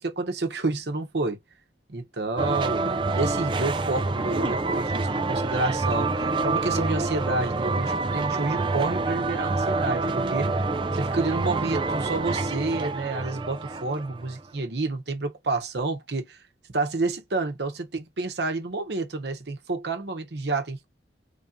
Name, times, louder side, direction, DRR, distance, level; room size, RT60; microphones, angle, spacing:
voice 1, 0.0-1.4 1.9-2.8 3.1-10.5 10.9-16.4 16.7-20.9, right 3 dB, 70° right, 0.9 m, -29 dB
sound 1, 2.4-14.4, right 3 dB, 25° right, 0.4 m, -27 dB
3.4 x 2.7 x 3.6 m
head